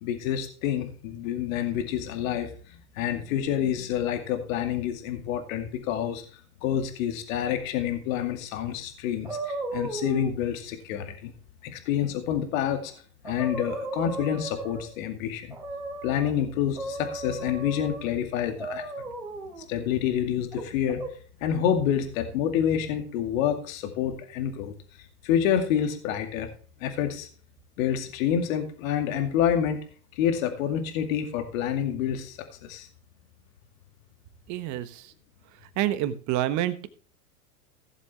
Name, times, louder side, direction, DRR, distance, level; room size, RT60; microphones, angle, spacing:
voice 1, 0.0-6.2 6.6-11.3 11.6-12.9 13.2-15.5 16.0-18.9 19.7-21.0 21.4-24.7 25.2-26.5 26.8-27.3 27.8-29.8 30.2-32.9, left 9 dB, 60° left, 6 dB, 2.3 m, -28 dB
sound 1, 9.2-10.4 12.8-12.9 13.2-15.0 15.5-16.3 16.8-18.1 18.6-19.7 20.5-21.1, right 2 dB, 5° right, 2.8 m, -35 dB
voice 2, 34.5-35.1 35.8-36.9, right 13 dB, 40° right, 13 dB, 1.3 m, -28 dB
16.5 x 7.3 x 3.4 m, 0.41 s
hypercardioid pair, 110°, 46 cm